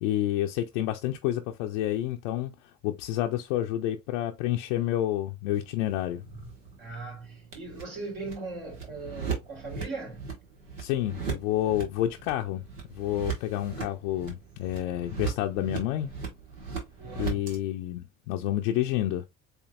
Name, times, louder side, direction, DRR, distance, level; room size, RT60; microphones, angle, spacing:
voice 1, 0.0-2.5 2.8-6.2 10.8-12.6 12.9-16.1 17.2-19.3, left 13 dB, 65° left, 0.6 m, -29 dB
sound 1, 5.5-17.6, right 6 dB, 75° right, 1.7 m, -39 dB
voice 2, 6.8-10.3 17.0-17.4, right 3 dB, 60° right, 3.2 m, -39 dB
7.9 x 2.8 x 2.3 m
figure-of-eight pair, 45°, 38 cm